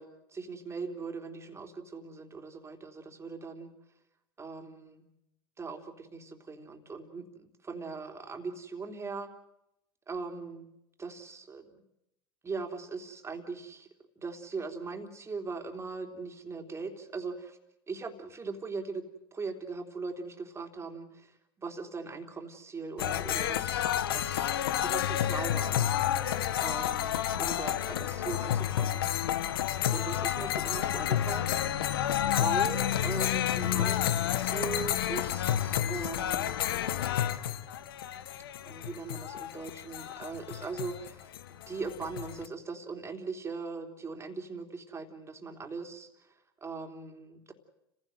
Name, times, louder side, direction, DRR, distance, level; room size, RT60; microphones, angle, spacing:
voice 1, 0.0-3.7 4.4-5.0 5.6-9.3 10.1-10.7 11.0-11.7 12.4-13.9 14.2-17.6 17.9-19.0 19.3-29.1 29.9-31.6 32.4-36.6 38.7-46.3 46.6-47.5, right 4 dB, 25° right, 5 dB, 3.4 m, -40 dB
sound 1, 23.0-42.5, left 11 dB, 80° left, 1.1 m, -30 dB
29.5 x 16.0 x 7.9 m, 0.85 s
hypercardioid pair, 80°, 12 cm